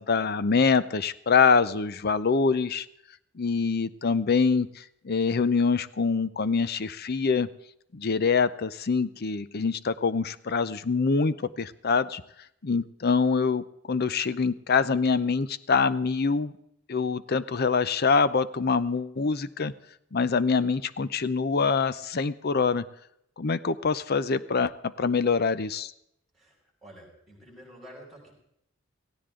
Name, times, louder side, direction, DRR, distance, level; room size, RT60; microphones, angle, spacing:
voice 1, 0.0-2.9 3.4-7.5 7.9-12.2 12.6-16.5 16.9-19.7 20.1-22.8 23.4-25.9, left 5 dB, 50° left, 15 dB, 0.6 m, -25 dB
voice 2, 26.3-28.3, equal, ahead, -3 dB, 6.3 m, -49 dB
17.0 x 16.5 x 3.8 m, 0.75 s
head